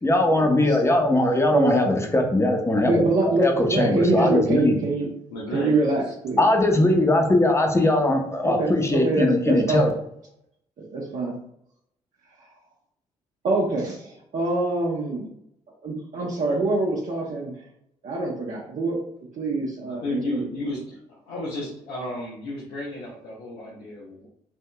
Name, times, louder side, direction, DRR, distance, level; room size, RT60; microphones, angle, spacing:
voice 1, 0.0-3.0 3.4-4.8 6.4-9.9, left 1 dB, 15° left, 3 dB, 0.8 m, -20 dB
voice 2, 1.5-1.9 2.8-5.1 5.5-6.4 8.4-9.9 10.9-11.3 13.4-15.2 15.8-17.5 18.0-19.0 19.4-20.5, right 2 dB, 55° right, -5 dB, 0.8 m, -25 dB
voice 3, 5.3-6.0 20.0-21.0 21.3-24.3, left 2 dB, 80° left, -5 dB, 0.8 m, -33 dB
3.4 x 2.7 x 2.3 m, 0.73 s
hypercardioid pair, 45°, 15 cm